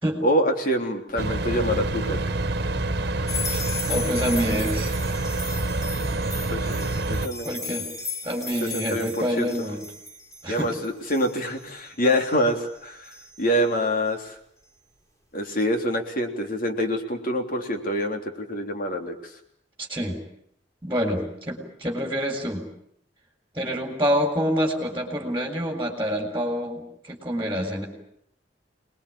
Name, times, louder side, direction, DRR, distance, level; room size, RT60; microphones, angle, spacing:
voice 1, 0.2-2.3 6.5-7.5 8.6-9.5 10.5-14.4 15.3-19.3 21.1-21.2, equal, 50° left, 4 dB, 3.4 m, -26 dB
sound 1, 1.2-7.3, right 2 dB, 60° right, 1.6 m, -27 dB
sound 2, 3.3-13.7, left 4 dB, 20° left, 5.7 m, -36 dB
voice 2, 3.9-4.9 7.4-7.9 8.2-9.8 10.4-10.7 19.8-20.2 20.8-22.7 23.5-26.8 27.1-27.9, equal, 15° right, 2 dB, 3.9 m, -27 dB
27.0 x 20.5 x 8.7 m, 0.73 s
head